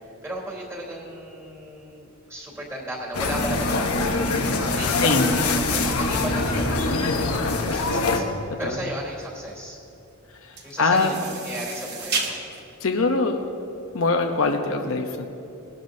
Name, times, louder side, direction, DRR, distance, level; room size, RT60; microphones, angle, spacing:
voice 1, 0.2-4.2 4.7-8.2 8.6-9.8 10.6-12.5, right 1 dB, 10° right, -3 dB, 3.3 m, -35 dB
sound 1, 3.1-8.2, left 3 dB, 90° left, 1.1 m, -24 dB
sound 2, 4.5-14.1, right 4 dB, 45° right, 1.4 m, -36 dB
voice 2, 5.0-5.4 7.0-7.3 8.6-8.7 10.4-11.1 12.8-13.4 13.9-15.3, left 3 dB, 65° left, 4 dB, 0.8 m, -23 dB
sound 3, 5.5-8.2, equal, 20° left, 0.6 m, -35 dB
20.0 x 11.5 x 2.7 m, 2.8 s
head